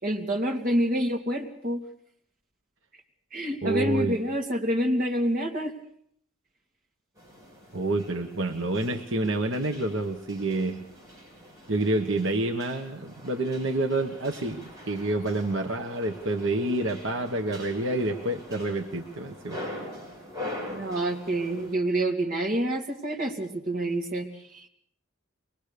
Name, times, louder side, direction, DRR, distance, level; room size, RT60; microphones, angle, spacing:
voice 1, 0.0-1.8 3.3-5.7 20.7-24.3 24.5-24.7, right 1 dB, 45° right, 2 dB, 2.9 m, -27 dB
voice 2, 3.6-4.2 7.7-10.8 11.7-19.6, right 2 dB, 65° right, 4 dB, 1.3 m, -28 dB
sound 1, 7.1-21.7, left 1 dB, 15° right, 7.6 m, -43 dB
24.0 x 20.5 x 6.8 m, 0.65 s
head